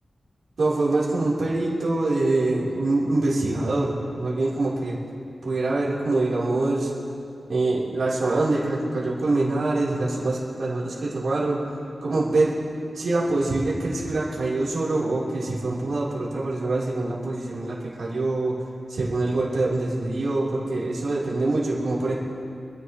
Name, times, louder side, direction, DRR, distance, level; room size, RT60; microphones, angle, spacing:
voice 1, 0.6-5.0 5.4-6.9 7.5-12.6 12.9-18.6 18.9-22.1, right 2 dB, 85° right, -7 dB, 3.7 m, -24 dB
27.5 x 10.5 x 3.1 m, 2.5 s
wide cardioid pair, 135°, 0 cm